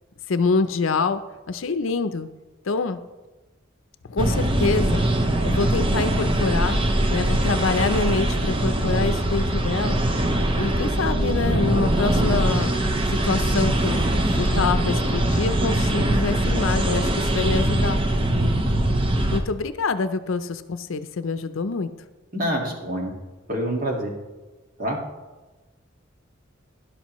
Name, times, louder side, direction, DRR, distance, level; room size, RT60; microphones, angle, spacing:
voice 1, 0.3-1.2 1.5-2.3 2.7-3.0 4.1-5.1 5.4-6.8 7.1-10.0 10.6-12.7 13.1-14.1 14.4-18.0 19.3-21.9, left 4 dB, 75° left, 11 dB, 0.5 m, -25 dB
sound 1, 4.2-19.4, right 1 dB, 25° right, 0.7 m, -22 dB
voice 2, 22.3-23.1 23.5-24.1 24.8-25.0, equal, 45° right, 0 dB, 1.8 m, -26 dB
12.0 x 11.0 x 3.1 m, 1.2 s
head